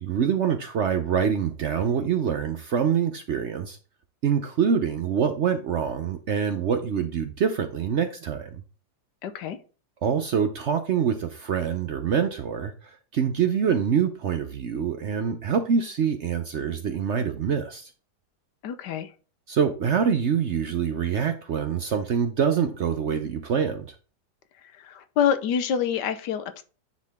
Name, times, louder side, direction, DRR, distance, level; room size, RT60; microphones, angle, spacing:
voice 1, 0.0-3.8 4.2-8.6 10.0-12.7 13.1-17.9 19.5-23.9, right 7 dB, 60° right, 0.8 m, -25 dB
voice 2, 9.2-9.6 18.6-19.1 24.7-26.6, left 8 dB, 85° left, 1.4 m, -26 dB
9.5 x 3.9 x 3.5 m
omnidirectional pair, 1.8 m